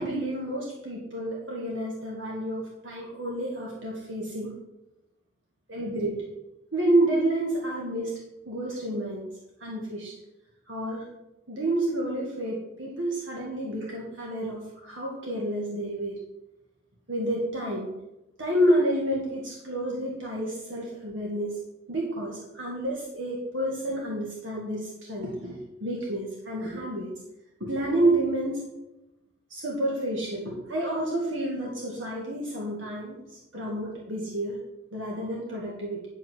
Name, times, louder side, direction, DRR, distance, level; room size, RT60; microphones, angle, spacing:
voice 1, 0.0-4.5 5.7-6.2 6.7-8.1 8.5-9.3 9.6-10.1 10.7-11.1 11.5-16.2 17.1-17.9 18.4-21.6 21.9-27.1 27.6-28.6 29.5-34.6 34.9-36.1, right 1 dB, 70° right, -3 dB, 1.9 m, -29 dB
10.0 x 5.2 x 6.2 m, 0.94 s
head